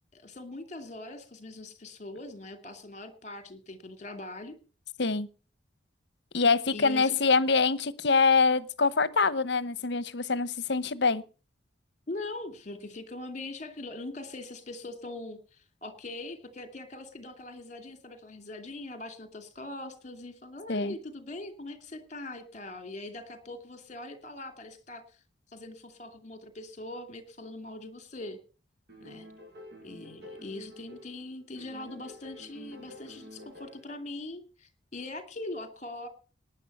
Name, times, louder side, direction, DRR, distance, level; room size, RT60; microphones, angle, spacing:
voice 1, 0.1-4.5 6.7-7.2 12.1-25.0 25.5-28.4 29.0-29.3 29.8-36.1, left 2 dB, 35° left, 8 dB, 2.6 m, -41 dB
voice 2, 6.3-11.2 20.7-20.9, left 4 dB, 60° left, 17 dB, 0.9 m, -25 dB
sound 1, 28.9-31.2 31.5-34.0, left 1 dB, 55° right, 7.6 m, -49 dB
18.5 x 10.5 x 5.5 m, 0.37 s
head